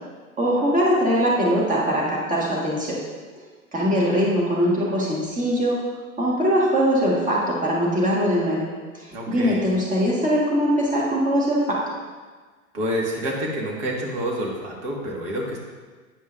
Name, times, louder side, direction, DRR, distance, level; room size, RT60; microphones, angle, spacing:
voice 1, 0.4-3.0 3.7-5.8 6.2-8.7 8.9-11.8, equal, 20° right, -4 dB, 1.7 m, -21 dB
voice 2, 9.1-9.6 12.7-15.6, equal, 55° right, -2 dB, 1.9 m, -28 dB
9.6 x 5.4 x 2.6 m, 1.4 s
hypercardioid pair, 95°, 42 cm